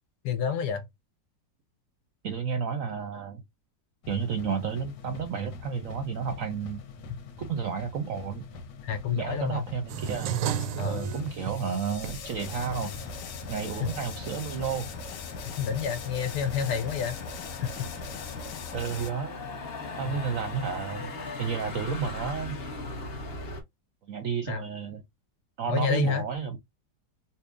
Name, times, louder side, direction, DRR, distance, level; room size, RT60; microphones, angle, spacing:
voice 1, 0.2-0.8 8.8-9.7 10.8-11.1 13.8-13.9 15.4-17.2 17.6-17.9 20.1-20.2 24.5-24.6 25.7-26.2, left 7 dB, 70° left, 1.2 m, -29 dB
voice 2, 2.2-3.4 4.1-6.8 7.4-8.4 9.1-10.3 10.8-13.0 13.5-14.9 18.7-19.4 20.0-21.1 21.4-22.6 24.1-25.0 25.6-26.6, right 6 dB, 70° right, 0.8 m, -31 dB
sound 1, 4.0-19.1, left 5 dB, 90° left, 1.5 m, -41 dB
sound 2, 9.9-14.8, right 8 dB, 85° right, 1.3 m, -35 dB
Motor vehicle (road), 12.4-23.6, left 3 dB, 45° left, 0.9 m, -40 dB
5.5 x 2.1 x 2.4 m
omnidirectional pair, 1.9 m